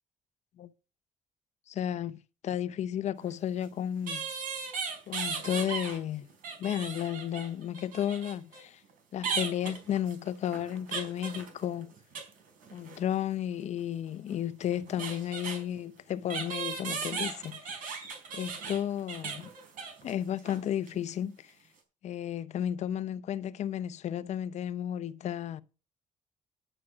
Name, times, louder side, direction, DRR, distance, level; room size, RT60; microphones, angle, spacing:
voice 1, 1.7-4.3 5.1-6.3 6.6-8.8 9.1-11.9 12.7-18.0 18.3-19.5 20.0-21.5 22.0-25.6, left 10 dB, 60° left, 0.7 m, -33 dB
sound 1, 3.2-3.3 4.1-6.0 6.3-8.6 9.2-12.3 12.6-13.0 14.3-14.4 14.6-15.6 16.3-20.1 20.4-20.6 20.9-21.0, right 5 dB, 85° right, 4.1 m, -37 dB
11.0 x 7.8 x 6.0 m
cardioid pair, 140°, 13 cm